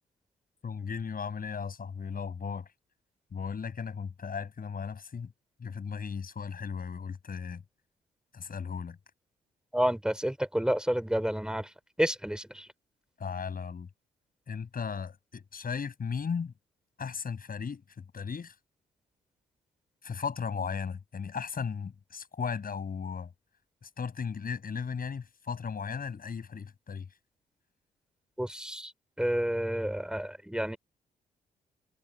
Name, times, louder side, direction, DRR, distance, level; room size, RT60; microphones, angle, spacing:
voice 1, 0.6-2.7 3.3-5.3 5.6-7.6 8.3-9.0 13.2-13.9 14.5-16.5 17.0-18.6 20.0-23.3 23.8-27.1, left 6 dB, 50° left, 7.8 m, -36 dB
voice 2, 9.7-12.7 28.4-28.9 29.2-30.8, equal, 5° right, 3.7 m, -30 dB
hypercardioid pair, 45°, 20 cm